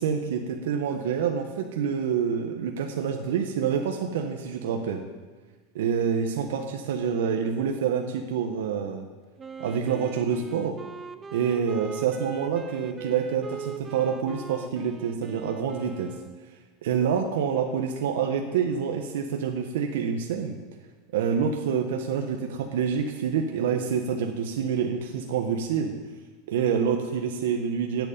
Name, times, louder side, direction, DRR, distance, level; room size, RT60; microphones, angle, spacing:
voice 1, 0.0-5.0 5.7-9.1 9.6-10.8 11.3-16.1 16.8-20.6 21.1-25.9 26.5-28.1, right 7 dB, 80° right, 2 dB, 1.3 m, -27 dB
Wind instrument woodwind instrument, 9.4-16.5, right 6 dB, 15° right, 0.6 m, -40 dB
10.5 x 8.4 x 8.7 m, 1.3 s
supercardioid pair, 155°, 0 cm